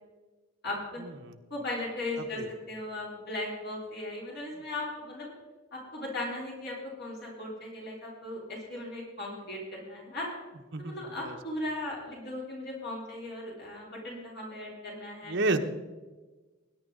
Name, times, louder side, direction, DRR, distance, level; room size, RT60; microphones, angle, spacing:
voice 1, 0.6-1.0 1.5-5.3 5.7-10.3 10.8-15.4, left 1 dB, 50° left, -4 dB, 3.5 m, -37 dB
voice 2, 10.7-11.4 15.3-15.6, right 2 dB, 60° right, 5 dB, 1.1 m, -30 dB
20.5 x 10.5 x 3.9 m, 1.2 s
head